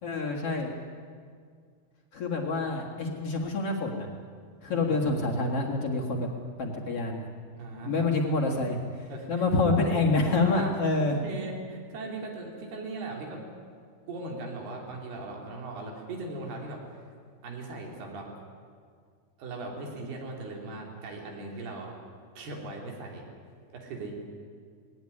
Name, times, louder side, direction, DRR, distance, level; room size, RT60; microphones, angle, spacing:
voice 1, 0.0-0.7 2.1-4.1 4.6-6.3 6.6-7.2 7.8-11.2, left 3 dB, 45° left, -1 dB, 2.3 m, -27 dB
voice 2, 4.7-5.2 7.6-8.1 9.1-9.3 10.5-10.7 11.0-13.4 14.1-16.8 17.4-18.3 19.4-21.9 22.4-23.2 23.7-24.1, right 2 dB, 90° right, 0 dB, 5.1 m, -39 dB
19.5 x 17.5 x 10.0 m, 2.1 s
omnidirectional pair, 4.4 m